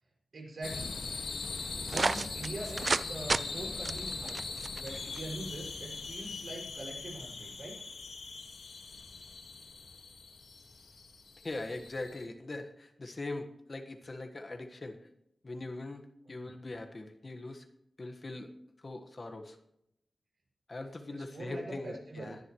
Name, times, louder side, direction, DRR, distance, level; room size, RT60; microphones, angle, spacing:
voice 1, 0.3-0.9 1.8-7.8 16.4-16.5 21.1-22.4, right 2 dB, 75° right, -1 dB, 6.2 m, -43 dB
sound 1, 0.6-12.3, left 4 dB, 90° left, 1.7 m, -41 dB
sound 2, 1.9-3.0 3.3-3.4 3.9-5.2, right 3 dB, 45° right, 0.4 m, -31 dB
voice 2, 11.4-15.0 15.4-16.0 16.3-17.7 18.0-18.5 18.8-19.6 20.7-22.4, left 2 dB, 40° left, 5 dB, 1.4 m, -41 dB
22.0 x 10.5 x 3.1 m, 0.76 s
wide cardioid pair, 110°, 0 cm